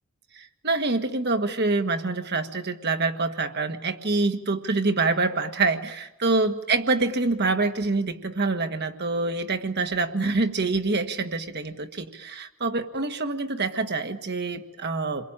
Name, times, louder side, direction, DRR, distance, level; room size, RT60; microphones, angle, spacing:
voice 1, 0.3-15.2, right 3 dB, 50° right, 7 dB, 1.6 m, -26 dB
28.5 x 22.5 x 8.9 m, 0.97 s
head